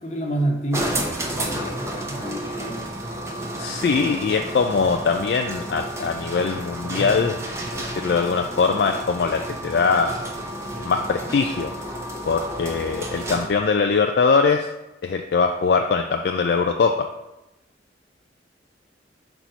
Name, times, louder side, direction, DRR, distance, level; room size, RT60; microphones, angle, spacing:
voice 1, 0.0-2.9, right 1 dB, 40° left, 1 dB, 1.1 m, -29 dB
sound 1, 0.7-13.6, right 1 dB, 15° right, 0.7 m, -31 dB
voice 2, 3.6-7.4 7.7-10.1 10.8-11.7 12.3-14.7 15.0-16.9, left 5 dB, 60° left, 4 dB, 0.3 m, -22 dB
4.5 x 4.1 x 5.6 m, 0.95 s
head